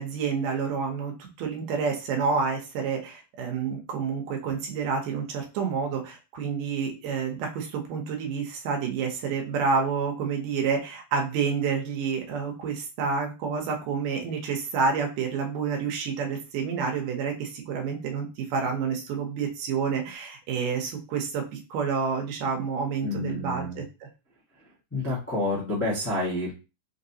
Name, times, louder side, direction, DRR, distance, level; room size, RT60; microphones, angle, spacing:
voice 1, 0.0-21.4 21.7-24.1, right 5 dB, 80° right, 2 dB, 2.7 m, -29 dB
voice 2, 23.0-23.8 24.9-26.5, left 2 dB, 15° left, -7 dB, 0.4 m, -29 dB
5.8 x 2.9 x 2.8 m, 0.31 s
omnidirectional pair, 3.8 m